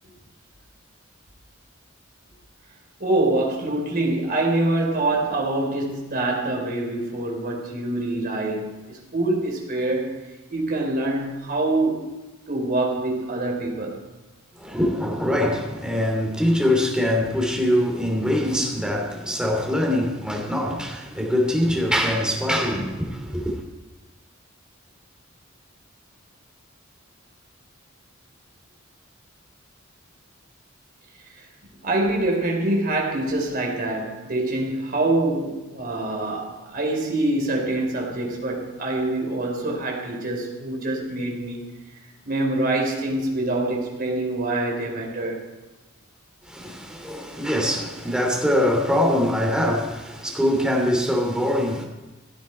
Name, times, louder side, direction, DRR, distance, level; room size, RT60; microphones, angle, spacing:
voice 1, 3.0-10.1 10.5-12.0 12.5-14.0 31.8-41.7 42.2-45.4 48.0-48.1, right 2 dB, 45° right, 3.9 m, -25 dB
voice 2, 14.5-23.6 46.4-51.8, left 1 dB, 5° right, 2.9 m, -23 dB
16.0 x 12.5 x 4.5 m
head